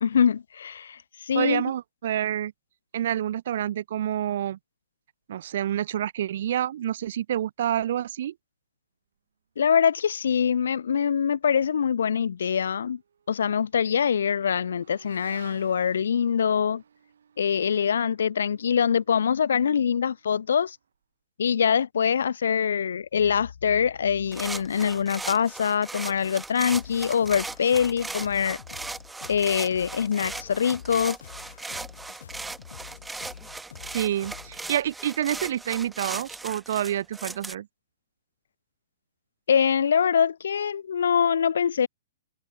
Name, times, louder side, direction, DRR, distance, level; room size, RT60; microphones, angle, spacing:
voice 1, 0.0-1.7 9.6-13.0 13.3-16.8 17.4-20.8 21.4-28.6 29.3-31.2 39.5-41.9, left 7 dB, 90° left, 0.5 m, -24 dB
voice 2, 1.3-2.5 2.9-4.6 5.3-8.3 33.9-37.7, right 11 dB, 50° right, 0.3 m, -28 dB
Motorcycle / Accelerating revving vroom, 12.3-21.0, right 7 dB, 85° right, 7.7 m, -56 dB
sound 1, 24.3-37.5, right 3 dB, 5° right, 0.9 m, -38 dB
sound 2, 26.7-34.6, left 8 dB, 70° left, 1.6 m, -46 dB
hypercardioid pair, 170°, 0 cm